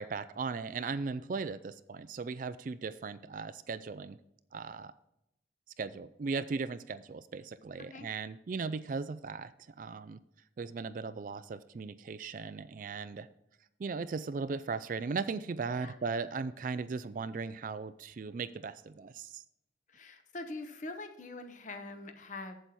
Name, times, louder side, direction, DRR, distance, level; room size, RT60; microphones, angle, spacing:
voice 1, 0.0-4.2 4.5-4.9 5.8-9.5 9.8-10.2 10.6-13.3 13.8-19.4, right 4 dB, 45° right, 15 dB, 0.3 m, -37 dB
voice 2, 19.9-22.6, left 2 dB, 40° left, 7 dB, 0.9 m, -43 dB
8.0 x 7.8 x 4.2 m, 0.84 s
head